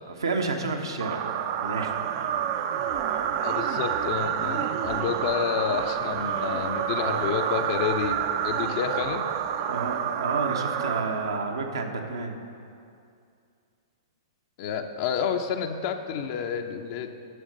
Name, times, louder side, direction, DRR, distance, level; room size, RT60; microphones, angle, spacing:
voice 1, 0.1-1.2 1.6-1.9 9.6-12.4, right 3 dB, 75° right, 3 dB, 1.1 m, -30 dB
sound 1, 1.0-11.7, right 9 dB, 45° right, 0.5 m, -29 dB
voice 2, 3.4-8.2 8.4-9.3 14.6-17.1, left 7 dB, 45° left, 5 dB, 0.6 m, -29 dB
11.0 x 6.4 x 5.4 m, 2.4 s
figure-of-eight pair, 110°, 2 cm